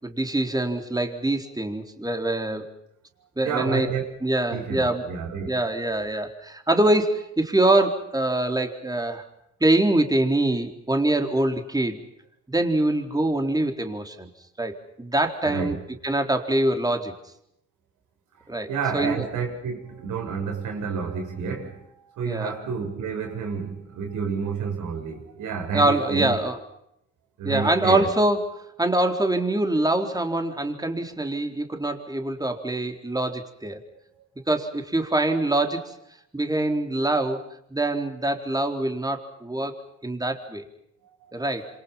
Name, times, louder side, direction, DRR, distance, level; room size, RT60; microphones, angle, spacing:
voice 1, 0.0-2.7 3.4-3.9 4.2-5.0 5.5-9.2 9.6-12.0 12.5-14.3 14.6-15.8 16.0-17.1 18.5-19.2 22.3-22.5 25.7-26.6 27.4-33.8 34.5-36.0 36.3-37.4 37.7-39.7 40.0-40.7 41.3-41.7, right 1 dB, 10° right, 4.1 m, -24 dB
voice 2, 3.4-4.1 4.5-5.5 15.4-15.8 18.6-26.3 27.4-28.1 41.2-41.7, right 6 dB, 85° right, 7.8 m, -30 dB
27.5 x 27.0 x 5.8 m
cardioid pair, 90°, 30 cm